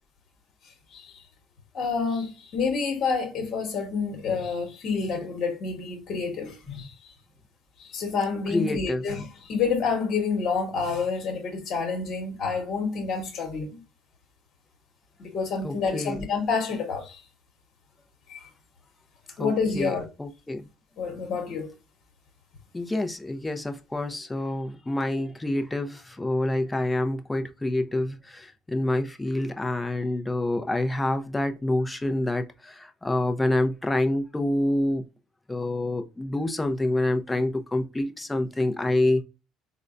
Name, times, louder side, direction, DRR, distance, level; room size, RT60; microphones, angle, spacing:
voice 1, 1.7-6.9 7.8-13.8 15.2-17.2 18.3-18.5 19.4-20.1 21.0-21.7, left 5 dB, 55° left, 1.2 m, -28 dB
voice 2, 8.5-9.0 15.6-16.2 19.4-20.6 22.7-35.0 35.5-39.2, left 1 dB, 15° left, 0.6 m, -27 dB
3.7 x 2.2 x 2.5 m
supercardioid pair, 75°, 0 cm